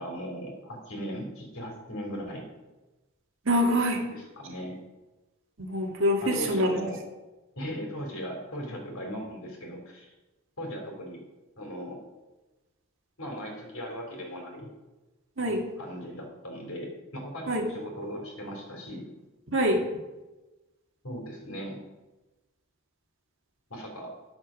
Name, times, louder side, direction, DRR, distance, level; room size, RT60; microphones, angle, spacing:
voice 1, 0.0-2.4 4.0-4.8 6.2-7.0 7.6-10.1 10.6-11.2 11.6-12.0 13.2-14.7 15.8-19.1 21.0-21.8 23.7-24.1, equal, 65° left, 1 dB, 3.1 m, -38 dB
voice 2, 3.5-4.0 5.6-6.8 15.4-15.6 17.5-17.6 19.5-19.8, equal, 60° right, 1 dB, 1.8 m, -25 dB
10.0 x 6.3 x 6.2 m, 1.1 s
head